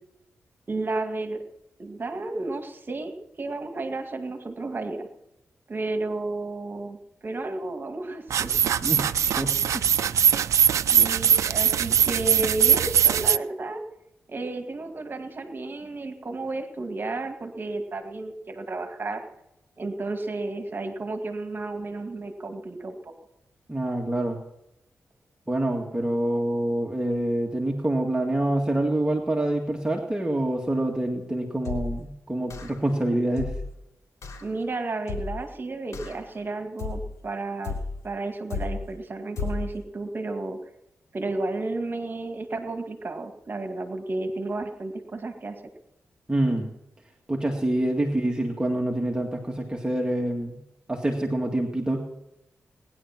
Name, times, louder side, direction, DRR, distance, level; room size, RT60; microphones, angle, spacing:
voice 1, 0.7-1.4 1.8-5.1 5.7-8.5 10.9-13.8 14.3-19.2 19.8-23.1 34.4-37.7 38.0-40.6 41.1-45.5, right 2 dB, 45° right, 5 dB, 2.0 m, -32 dB
sound 1, 8.3-13.4, right 8 dB, 85° right, 0.5 m, -21 dB
voice 2, 9.3-9.8 23.7-24.4 25.5-33.5 46.3-46.7 47.3-50.6 50.9-52.1, right 1 dB, 15° right, 0 dB, 2.1 m, -26 dB
sound 2, 31.6-32.1 32.5-32.9 33.4-33.8 34.2-34.5 35.1-35.5 35.9-36.3 36.8-37.2 37.6-38.1 38.5-38.9 39.4-39.8, left 4 dB, 85° left, 3.2 m, -33 dB
19.5 x 11.0 x 6.0 m, 0.86 s
cardioid pair, 70°, 5 cm